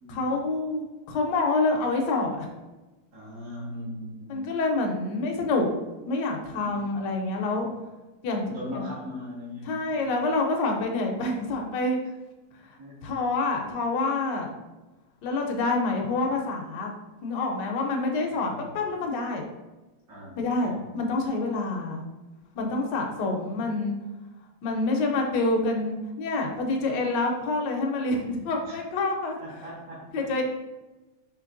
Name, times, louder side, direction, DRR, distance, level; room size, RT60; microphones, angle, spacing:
voice 1, 0.1-2.5 4.3-5.7 6.1-7.7 8.2-8.4 8.7-8.9 9.7-12.0 13.0-14.5 15.2-16.9 17.2-19.4 20.4-22.0 22.6-24.0 24.6-29.4 30.1-30.4, left 2 dB, 70° left, 2 dB, 1.3 m, -27 dB
voice 2, 3.1-4.3 6.5-6.8 8.4-10.3 12.6-13.2 18.4-18.6 20.1-20.8 22.5-22.8 28.6-28.8 29.4-30.3, left 1 dB, 50° right, -6 dB, 1.8 m, -40 dB
5.1 x 3.2 x 2.5 m, 1.1 s
omnidirectional pair, 2.0 m